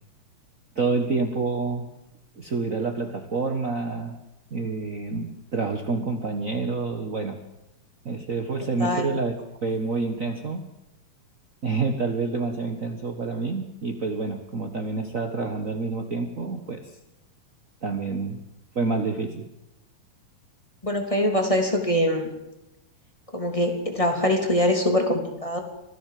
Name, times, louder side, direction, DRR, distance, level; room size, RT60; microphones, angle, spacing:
voice 1, 0.7-1.9 2.4-4.2 4.5-7.4 8.0-9.3 9.6-10.6 11.6-16.9 17.8-18.4 18.7-19.5, right 4 dB, 50° right, 5 dB, 0.9 m, -28 dB
voice 2, 20.8-22.3 23.3-25.6, left 1 dB, 10° left, 4 dB, 2.9 m, -23 dB
25.5 x 16.5 x 7.7 m, 0.91 s
omnidirectional pair, 4.0 m